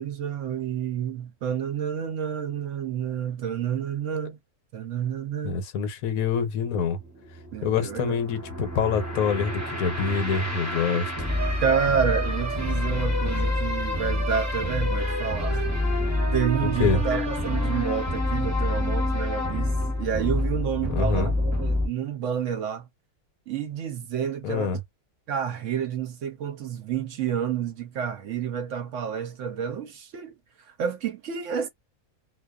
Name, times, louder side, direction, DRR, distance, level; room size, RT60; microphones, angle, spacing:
voice 1, 0.0-4.4 4.7-5.6 7.5-8.2 11.6-15.7 16.3-22.9 23.5-24.8 25.3-30.3 30.7-31.7, right 8 dB, 65° right, 0.8 m, -29 dB
voice 2, 5.4-7.0 7.6-11.3 16.6-17.0 20.9-21.3 24.4-24.8, left 6 dB, 75° left, 1.1 m, -26 dB
sound 1, 6.7-21.9, left 1 dB, 15° right, 0.6 m, -27 dB
2.4 x 2.3 x 2.3 m
omnidirectional pair, 1.6 m